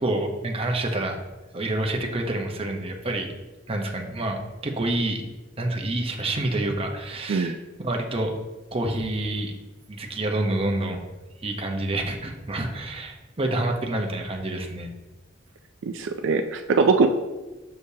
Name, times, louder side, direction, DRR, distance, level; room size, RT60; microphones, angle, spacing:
voice 1, 0.0-1.2 1.5-3.3 3.7-5.2 5.6-8.3 8.7-9.5 9.9-11.0 11.4-14.9, right 1 dB, 30° right, 2 dB, 0.8 m, -28 dB
voice 2, 15.8-17.1, right 4 dB, 75° right, 7 dB, 0.4 m, -21 dB
6.7 x 6.5 x 2.8 m, 1.1 s
head